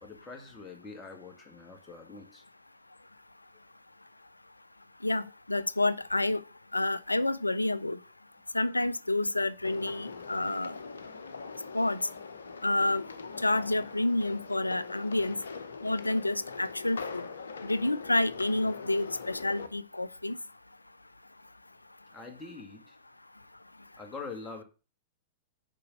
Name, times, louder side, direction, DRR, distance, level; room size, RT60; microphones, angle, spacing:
voice 1, 0.0-2.4 22.1-23.0 24.0-24.6, left 4 dB, 15° left, 1.7 m, -44 dB
voice 2, 5.5-6.4 6.7-8.0 8.5-10.7 11.7-12.0 12.6-13.0 13.4-15.4 15.8-17.2 17.7-20.3, left 2 dB, 85° left, 0.4 m, -29 dB
sound 1, 9.6-19.7, left 4 dB, 70° left, 0.8 m, -42 dB
6.8 x 5.3 x 6.2 m
figure-of-eight pair, 100°, 0 cm